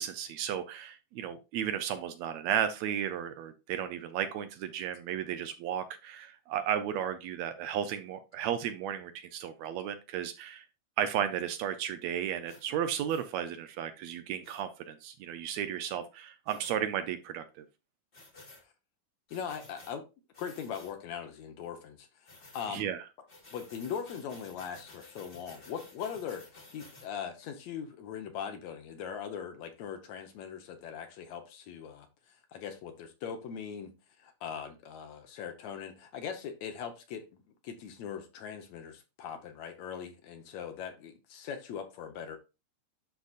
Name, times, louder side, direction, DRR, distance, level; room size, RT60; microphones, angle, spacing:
voice 1, 0.0-10.7 11.0-17.7 22.7-23.0, right 9 dB, 75° right, 9 dB, 1.8 m, -34 dB
sound 1, 12.5-12.6 13.1-13.3 14.4-14.6 16.5-16.7 18.1-18.6 19.3-19.9 20.3-20.9 22.2-22.7 23.3-27.1, left 2 dB, 30° left, 1.0 m, -53 dB
voice 2, 19.3-20.0 20.4-23.0 23.5-33.9 34.2-42.4, left 7 dB, 70° left, 6 dB, 2.1 m, -40 dB
11.5 x 4.0 x 2.4 m, 0.27 s
omnidirectional pair, 3.4 m